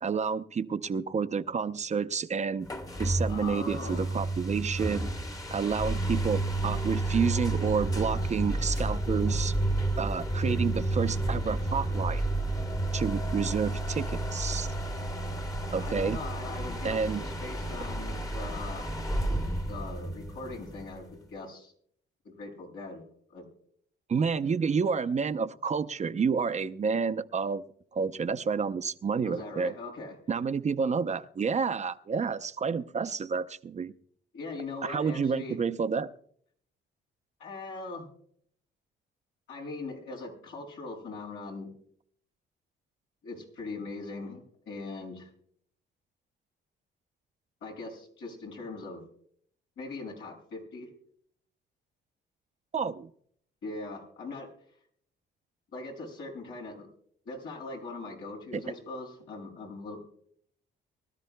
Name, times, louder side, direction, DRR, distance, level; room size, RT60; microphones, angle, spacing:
voice 1, 0.0-2.7 3.0-5.1 5.5-9.5 10.0-12.2 12.9-14.7 15.7-16.2 16.8-17.2 24.1-27.6 27.9-29.7 30.3-33.9 34.8-36.1 52.7-53.1 58.5-58.6, right 5 dB, 35° right, 0.6 m, -29 dB
sound 1, 2.6-21.1, right 2 dB, 20° left, 1.2 m, -31 dB
voice 2, 3.2-4.1 15.8-18.9 19.6-21.7 22.2-23.0 23.3-23.4 29.2-30.1 34.3-35.6 37.4-38.1 39.5-41.7 43.2-45.3 47.6-49.0 49.8-50.9 53.6-54.5 55.7-56.9 57.2-60.0, left 3 dB, 85° left, 6.7 m, -40 dB
24.0 x 13.0 x 2.2 m
cardioid pair, 90°, 20 cm